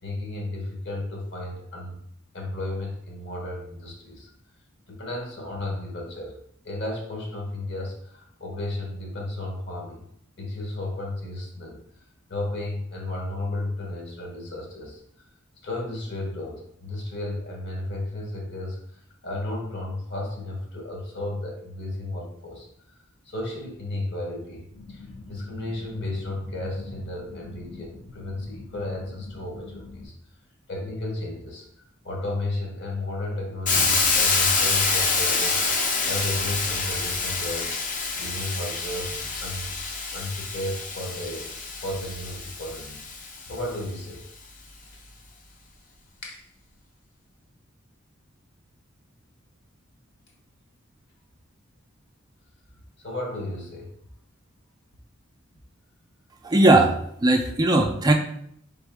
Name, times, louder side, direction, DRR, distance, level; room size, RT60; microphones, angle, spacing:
voice 1, 0.0-2.0 2.3-4.3 4.9-6.3 6.6-10.1 10.4-11.8 12.3-15.0 15.6-23.0 23.2-30.1 30.7-31.7 32.0-41.5 41.8-43.1 43.4-44.2 46.2-46.4 53.0-53.9, left 1 dB, 60° left, 0 dB, 1.2 m, -33 dB
sound 1, 24.7-30.1, left 2 dB, 80° left, 1.7 m, -44 dB
Hiss, 33.7-43.5, left 4 dB, 40° left, 0.6 m, -26 dB
voice 2, 56.4-56.9 57.2-58.1, right 2 dB, 20° right, 3 dB, 0.3 m, -18 dB
4.0 x 3.6 x 3.5 m, 0.71 s
head